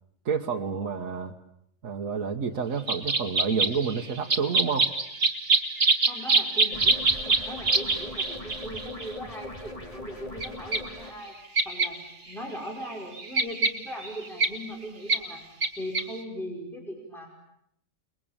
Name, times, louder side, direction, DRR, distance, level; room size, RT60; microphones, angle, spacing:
voice 1, 0.2-1.3 1.8-4.9, right 5 dB, 80° right, 2 dB, 1.7 m, -29 dB
sound 1, 2.9-9.1 10.4-10.5 10.7-10.8 11.6-11.9 12.3-12.4 12.7-14.5 15.1-15.2 15.6-15.7 15.9-16.1, right 3 dB, 45° right, 2.1 m, -24 dB
voice 2, 6.1-7.0 7.3-11.4 11.6-12.0 12.3-15.4 15.8-17.3, equal, ahead, 0 dB, 5.3 m, -39 dB
sound 2, 6.7-11.1, left 1 dB, 25° left, 3.1 m, -41 dB
29.5 x 21.5 x 8.9 m, 0.73 s
omnidirectional pair, 1.4 m